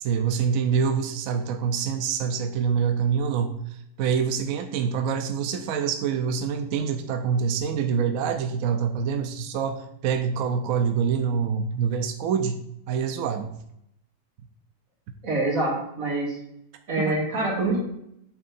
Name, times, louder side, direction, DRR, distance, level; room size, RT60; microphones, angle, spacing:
voice 1, 0.0-3.6 4.0-13.5, right 6 dB, 70° right, 7 dB, 0.8 m, -26 dB
voice 2, 15.2-16.4 16.9-17.8, right 2 dB, 50° right, -4 dB, 2.6 m, -25 dB
8.7 x 3.7 x 4.1 m, 0.77 s
omnidirectional pair, 1.9 m